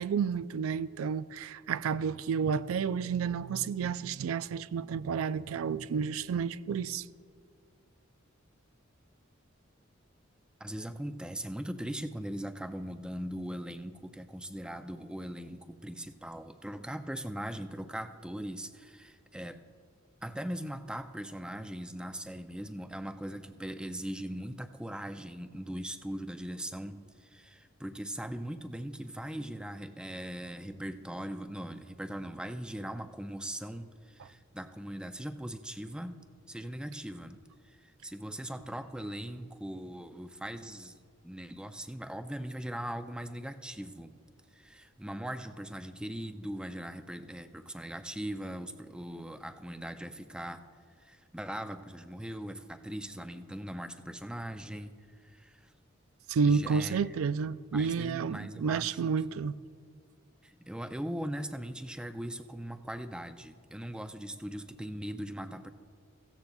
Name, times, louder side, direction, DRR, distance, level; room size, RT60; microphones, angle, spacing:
voice 1, 0.0-7.1 34.2-34.3 56.3-59.6, right 6 dB, 90° right, 0.4 m, -30 dB
voice 2, 10.6-19.6 20.2-36.2 36.5-44.1 44.5-50.6 51.0-55.0 55.2-55.7 56.5-57.0 57.7-59.1 60.4-65.7, right 1 dB, 5° right, 0.4 m, -40 dB
16.5 x 15.0 x 2.3 m
head